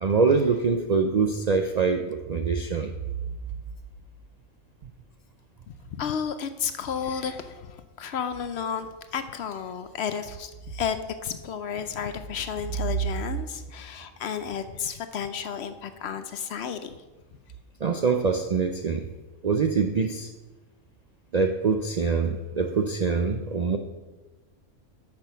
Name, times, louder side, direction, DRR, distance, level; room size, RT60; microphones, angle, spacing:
voice 1, 0.0-2.9 17.8-19.1 19.4-20.3 21.3-23.8, right 5 dB, 60° right, 5 dB, 0.4 m, -24 dB
voice 2, 5.7-8.9 9.1-11.0 11.2-16.9, left 7 dB, 65° left, 10 dB, 0.8 m, -32 dB
8.6 x 6.2 x 5.6 m, 1.2 s
omnidirectional pair, 1.4 m